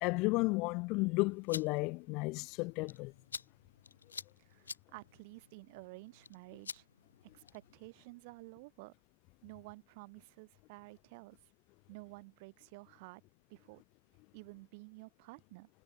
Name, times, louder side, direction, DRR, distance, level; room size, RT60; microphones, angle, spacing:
voice 1, 0.0-3.1, left 26 dB, 35° left, 0.3 m, -33 dB
sound 1, 1.2-7.8, left 6 dB, 75° left, 3.6 m, -50 dB
voice 2, 4.4-6.9 7.3-8.9 9.4-11.4 11.9-13.2 13.5-13.8 14.3-15.7, right 26 dB, 45° right, 7.3 m, -52 dB
figure-of-eight pair, 115°, 0 cm